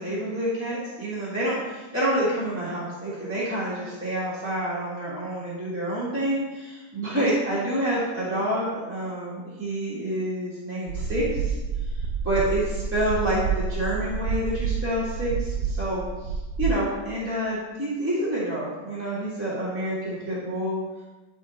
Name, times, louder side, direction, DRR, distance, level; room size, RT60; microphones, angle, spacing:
voice 1, 0.0-11.6 11.9-16.1 16.6-20.8, right 1 dB, 10° right, -9 dB, 1.6 m, -28 dB
sound 1, 10.9-16.7, right 6 dB, 90° right, 1.4 m, -29 dB
11.0 x 4.0 x 4.0 m, 1.2 s
omnidirectional pair, 1.8 m